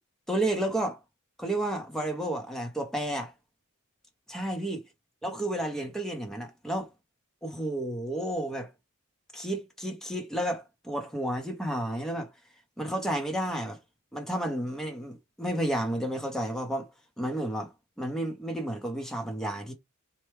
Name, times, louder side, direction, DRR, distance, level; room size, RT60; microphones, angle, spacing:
voice 1, 0.3-1.0 1.4-3.3 4.3-4.8 5.2-6.9 7.4-8.7 9.3-12.3 12.8-13.8 14.1-16.9 17.2-19.7, right 1 dB, ahead, 0.8 m, -31 dB
4.4 x 2.3 x 3.3 m
head